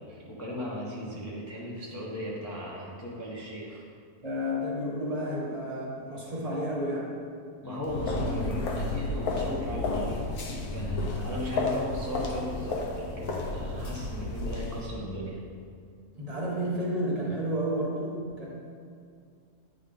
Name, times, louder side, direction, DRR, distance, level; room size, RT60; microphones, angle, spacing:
voice 1, 0.0-3.8 7.6-15.4, equal, 20° left, -6 dB, 0.4 m, -37 dB
voice 2, 4.2-7.1 16.2-18.5, equal, 25° right, -5 dB, 1.1 m, -31 dB
sound 1, 7.8-14.9, left 2 dB, 75° left, 1.2 m, -32 dB
9.4 x 3.7 x 3.4 m, 2.3 s
omnidirectional pair, 1.6 m